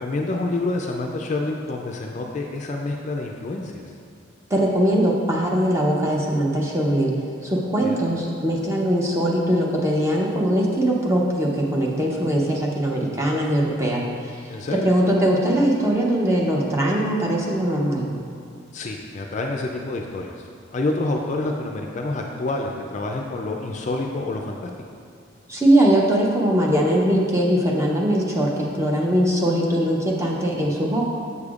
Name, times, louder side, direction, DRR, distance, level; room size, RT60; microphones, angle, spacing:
voice 1, 0.0-3.8 7.8-8.1 14.5-14.9 18.7-20.5 20.7-24.7, left 2 dB, 35° left, 1 dB, 0.4 m, -28 dB
voice 2, 4.5-18.1 25.5-31.0, right 1 dB, 15° right, -2 dB, 0.6 m, -21 dB
6.9 x 6.6 x 2.4 m, 2.4 s
head